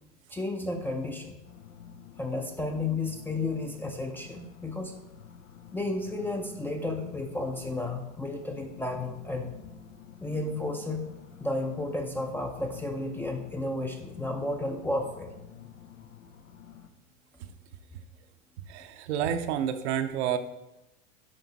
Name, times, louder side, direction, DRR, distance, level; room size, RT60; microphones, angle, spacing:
voice 1, 0.3-1.4 2.2-4.9 5.7-9.5 10.2-11.1 11.4-15.3, left 2 dB, 5° left, 3 dB, 0.5 m, -32 dB
sound 1, 1.4-16.9, left 8 dB, 85° left, 0.8 m, -49 dB
voice 2, 18.7-20.4, right 9 dB, 60° right, 8 dB, 0.8 m, -29 dB
10.5 x 3.6 x 4.0 m, 0.93 s
hypercardioid pair, 115°, 38 cm